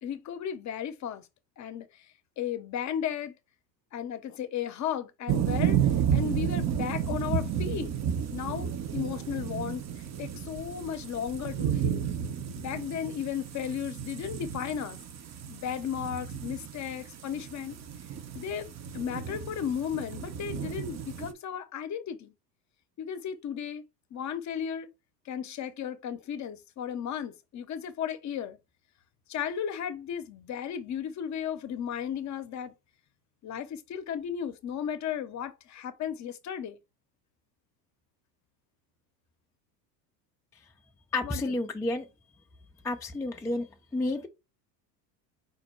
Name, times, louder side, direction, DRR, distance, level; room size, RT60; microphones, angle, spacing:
voice 1, 0.0-1.3 1.6-2.1 2.4-3.3 3.9-7.9 8.3-12.0 12.6-15.0 15.5-17.8 18.3-22.3 23.0-23.8 24.1-24.9 25.2-28.6 29.3-32.7 33.4-36.8 41.2-41.6, left 8 dB, 35° left, 0.8 m, -35 dB
sound 1, 5.3-21.3, right 8 dB, 35° right, 0.7 m, -32 dB
voice 2, 41.1-42.1 42.8-43.7 43.9-44.3, left 2 dB, 5° left, 0.4 m, -30 dB
5.2 x 2.1 x 4.4 m
hypercardioid pair, 85°, 50 cm